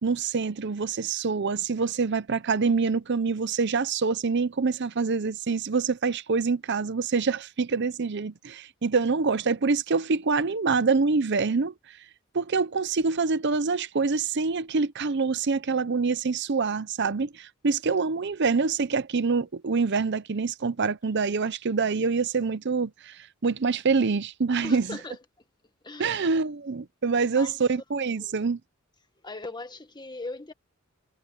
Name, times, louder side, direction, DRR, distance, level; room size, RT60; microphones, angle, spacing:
voice 1, 0.0-11.7 12.3-24.9 26.0-28.6, right 4 dB, 55° right, 0.7 m, -26 dB
voice 2, 24.6-25.5 25.8-26.3 27.2-28.4 29.2-30.5, left 2 dB, 20° left, 1.6 m, -40 dB
head